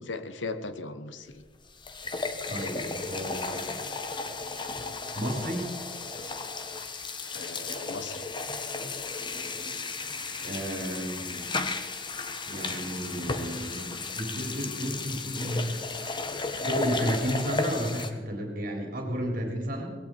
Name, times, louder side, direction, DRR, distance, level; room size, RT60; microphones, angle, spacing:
voice 1, 0.1-1.4 7.3-8.2, left 3 dB, 80° left, 11 dB, 1.1 m, -37 dB
sound 1, 1.4-1.5 1.8-18.1, left 3 dB, 25° left, 1.1 m, -34 dB
voice 2, 2.5-3.7 5.1-5.7 10.4-11.5 12.5-15.8 16.6-19.9, equal, 50° right, 2 dB, 3.5 m, -32 dB
18.5 x 16.5 x 4.5 m, 1.5 s
head